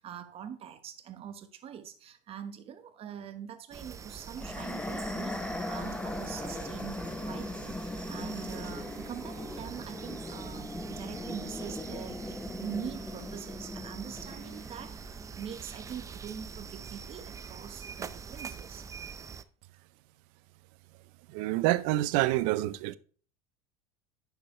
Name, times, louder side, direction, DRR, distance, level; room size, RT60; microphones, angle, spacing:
voice 1, 0.0-18.9, right 9 dB, 40° right, 1.2 m, -43 dB
sound 1, 3.7-19.4, right 6 dB, 20° right, 0.5 m, -44 dB
sound 2, 4.4-15.7, left 1 dB, 10° left, 0.8 m, -39 dB
voice 2, 21.3-23.0, right 16 dB, 65° right, 0.7 m, -27 dB
10.0 x 7.0 x 3.2 m
supercardioid pair, 115°, 15 cm